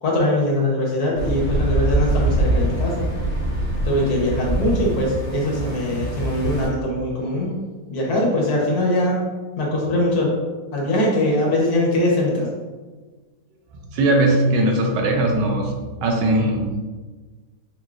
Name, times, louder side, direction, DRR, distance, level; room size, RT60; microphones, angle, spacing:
voice 1, 0.0-3.1 3.8-7.5 7.9-9.2 9.6-10.3 10.7-12.5, left 1 dB, 65° left, -3 dB, 1.5 m, -21 dB
sound 1, 1.2-6.7, right 2 dB, 30° left, 0.8 m, -23 dB
voice 2, 13.9-15.7 16.0-16.8, right 1 dB, 85° right, 2 dB, 1.3 m, -19 dB
4.4 x 3.6 x 2.5 m, 1.3 s
omnidirectional pair, 1.8 m